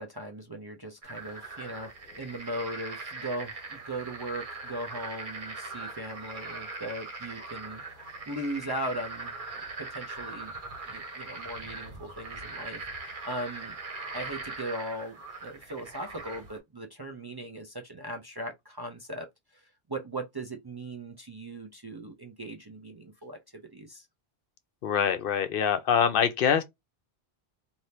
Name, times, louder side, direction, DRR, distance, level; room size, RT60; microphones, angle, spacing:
voice 1, 0.0-7.8 8.3-9.3 9.8-10.5 10.9-13.8 14.1-15.2 15.4-19.3 19.5-19.6 19.9-24.1, right 1 dB, 30° right, 0.5 m, -38 dB
sound 1, 1.0-16.6, right 3 dB, 55° right, 1.2 m, -41 dB
voice 2, 24.8-26.6, left 8 dB, 65° left, 0.7 m, -24 dB
3.4 x 2.6 x 2.7 m
omnidirectional pair, 1.0 m